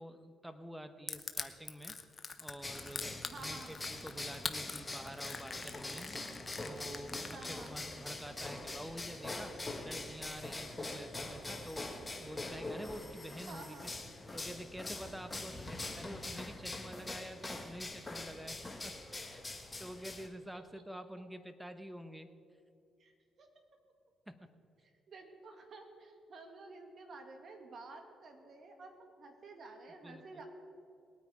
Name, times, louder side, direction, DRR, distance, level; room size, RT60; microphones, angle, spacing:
voice 1, 0.0-2.0 2.4-6.3 6.6-9.5 9.8-13.9 14.3-18.9 19.3-19.4 19.8-22.3 24.3-24.5 30.0-30.4, equal, 5° right, 10 dB, 1.0 m, -48 dB
Crushing, 1.1-7.8, left 4 dB, 30° left, 1.0 m, -43 dB
sound 1, 2.6-20.3, left 2 dB, 15° left, 1.5 m, -43 dB
voice 2, 3.3-3.7 7.3-7.7 13.5-13.9 20.5-20.6 23.0-23.5 25.1-30.5, right 3 dB, 50° right, 4 dB, 2.1 m, -51 dB
20.0 x 9.2 x 4.9 m, 2.6 s
cardioid pair, 90°, 0 cm